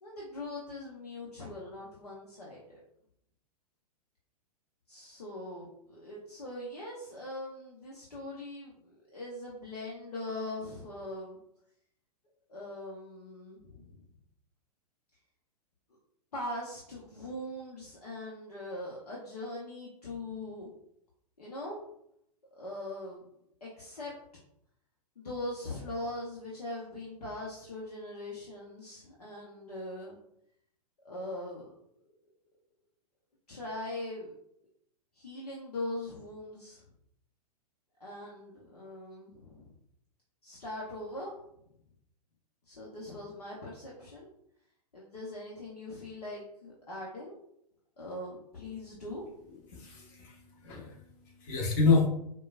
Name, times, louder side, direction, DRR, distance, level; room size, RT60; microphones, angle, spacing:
voice 1, 0.0-2.8 4.9-11.4 12.5-14.0 16.3-20.7 21.4-21.8 22.6-23.2 23.6-24.1 25.2-30.2 31.0-31.7 33.5-34.3 35.1-36.8 38.0-39.7 40.4-41.4 42.6-44.3 44.9-47.3 48.0-49.2, left 1 dB, 70° left, -5 dB, 0.8 m, -41 dB
voice 2, 49.7-52.1, left 4 dB, 35° left, 0 dB, 0.9 m, -28 dB
4.5 x 2.2 x 2.4 m, 0.74 s
figure-of-eight pair, 105°, 20 cm